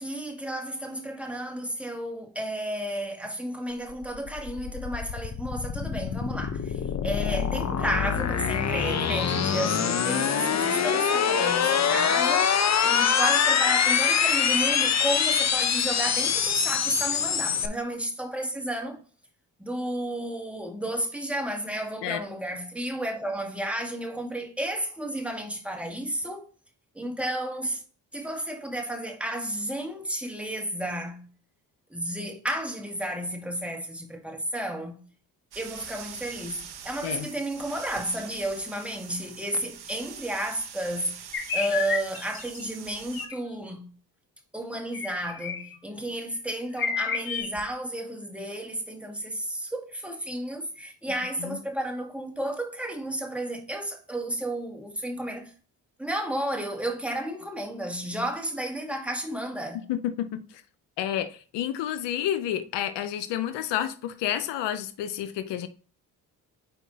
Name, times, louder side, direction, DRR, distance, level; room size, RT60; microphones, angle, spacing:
voice 1, 0.0-19.0 19.6-26.5 26.9-27.8 28.1-31.3 31.9-35.0 35.6-41.2 41.5-43.9 44.5-55.5 56.0-59.8, right 1 dB, 5° right, 2.1 m, -32 dB
sound 1, 3.9-17.7, left 7 dB, 40° left, 0.8 m, -24 dB
sound 2, 35.5-43.3, right 8 dB, 65° right, 1.1 m, -44 dB
sound 3, 41.3-42.7 43.1-43.3 44.9-45.7 46.3-46.4 46.7-47.6, left 6 dB, 60° left, 1.8 m, -31 dB
voice 2, 59.9-60.6 61.0-65.7, left 11 dB, 85° left, 0.7 m, -30 dB
5.7 x 4.6 x 4.2 m
supercardioid pair, 60°, 41 cm